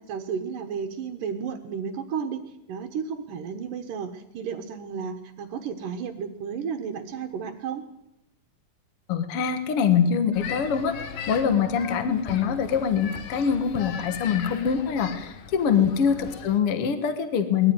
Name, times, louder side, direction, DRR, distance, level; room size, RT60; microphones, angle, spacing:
voice 1, 0.0-2.4 2.7-7.8 11.5-11.7 15.7-15.9, right 6 dB, 75° right, 1 dB, 2.9 m, -33 dB
voice 2, 9.1-11.0 11.3-17.7, left 7 dB, 55° left, 9 dB, 1.9 m, -24 dB
sound 1, 10.3-16.6, left 7 dB, 90° left, 3.4 m, -38 dB
21.5 x 14.5 x 9.7 m, 0.91 s
omnidirectional pair, 4.0 m